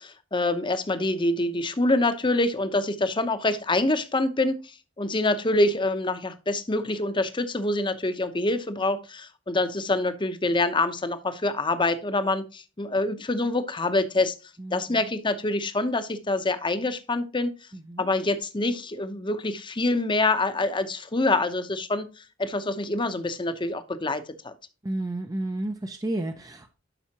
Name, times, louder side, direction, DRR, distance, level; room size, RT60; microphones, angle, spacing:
voice 1, 0.0-14.3 14.7-17.5 18.0-24.5, left 2 dB, 25° left, 0.8 m, -26 dB
voice 2, 14.6-15.0 17.7-18.1 24.8-26.7, right 1 dB, 20° right, 0.6 m, -32 dB
12.0 x 5.6 x 2.9 m
head